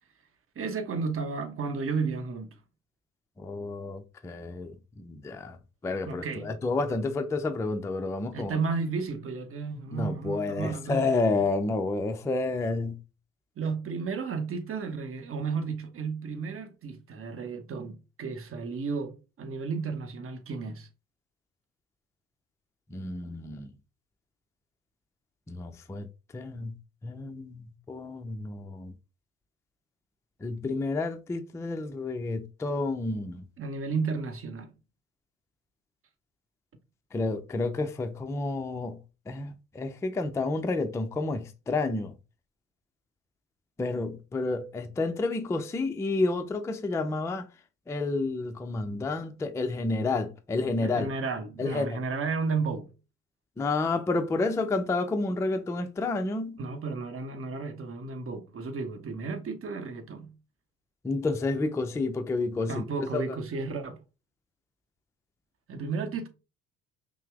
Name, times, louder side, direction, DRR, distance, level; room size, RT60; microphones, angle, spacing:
voice 1, 0.6-2.6 6.1-6.6 8.3-11.5 13.6-20.9 33.6-34.7 50.8-52.9 56.6-60.3 62.7-64.0 65.7-66.3, right 4 dB, 35° right, 1.0 m, -33 dB
voice 2, 3.4-4.7 5.0-5.6 5.8-8.6 9.9-13.0 22.9-23.7 25.5-26.1 26.3-26.7 27.0-27.6 27.9-28.9 30.4-33.4 37.1-39.0 39.3-42.1 43.8-47.5 47.9-51.1 51.6-52.0 53.6-56.6 61.0-63.2, left 3 dB, 5° left, 0.4 m, -30 dB
5.6 x 2.1 x 3.4 m
figure-of-eight pair, 55°, 41 cm